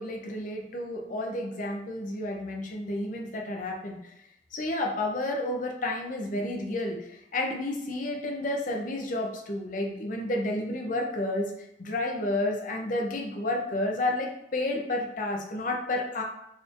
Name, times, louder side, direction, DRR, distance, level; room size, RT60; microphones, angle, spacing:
voice 1, 0.0-4.1 4.5-11.5 11.8-16.2, left 1 dB, 45° left, 1 dB, 0.6 m, -31 dB
4.1 x 3.1 x 2.5 m, 0.82 s
head